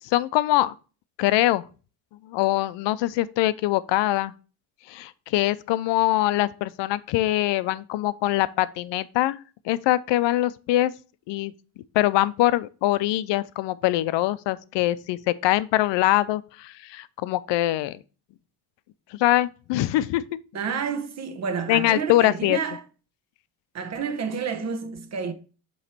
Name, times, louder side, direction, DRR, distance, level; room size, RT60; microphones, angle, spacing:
voice 1, 0.0-0.7 1.2-1.6 2.2-4.3 4.9-9.4 9.6-10.9 11.3-11.5 11.9-18.0 19.1-20.2 21.7-22.6, left 15 dB, 75° left, 0.6 m, -23 dB
voice 2, 20.5-22.8 23.7-25.3, right 6 dB, 35° right, 1.0 m, -29 dB
7.9 x 3.2 x 4.3 m
cardioid pair, 95°, 44 cm